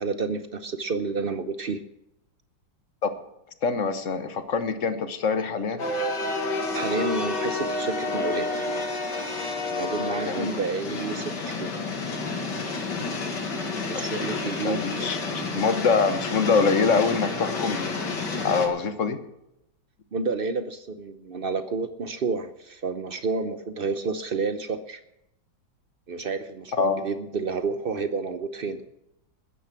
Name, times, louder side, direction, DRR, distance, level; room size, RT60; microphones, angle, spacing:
voice 1, 0.0-1.8 6.7-8.5 9.7-11.7 13.9-15.1 20.1-25.0 26.1-28.8, right 4 dB, 65° right, 11 dB, 0.5 m, -30 dB
voice 2, 3.6-5.8 10.2-10.5 13.9-14.1 14.5-18.0 18.4-19.2 26.8-27.1, left 5 dB, 45° left, 10 dB, 1.4 m, -25 dB
sound 1, 5.8-18.7, left 3 dB, 65° left, 2.6 m, -30 dB
14.0 x 10.0 x 6.0 m, 0.83 s
omnidirectional pair, 2.1 m